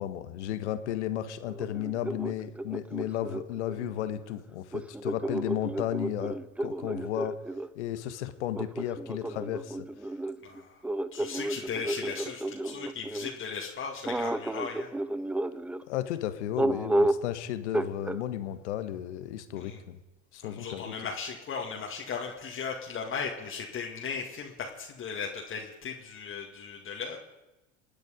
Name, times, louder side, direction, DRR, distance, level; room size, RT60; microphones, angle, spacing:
voice 1, 0.0-7.4 7.7-9.9 15.9-20.0 20.3-20.9, left 11 dB, 70° left, 11 dB, 1.4 m, -34 dB
sound 1, 1.5-3.9 4.7-7.7 8.5-13.3 14.0-15.8 16.6-17.3 17.7-18.2, right 1 dB, 5° right, 0.4 m, -32 dB
voice 2, 10.4-10.8 11.1-14.9 19.6-19.8 20.4-27.2, left 5 dB, 35° left, 0 dB, 2.1 m, -37 dB
27.5 x 9.2 x 5.2 m, 1.1 s
hypercardioid pair, 80°, 36 cm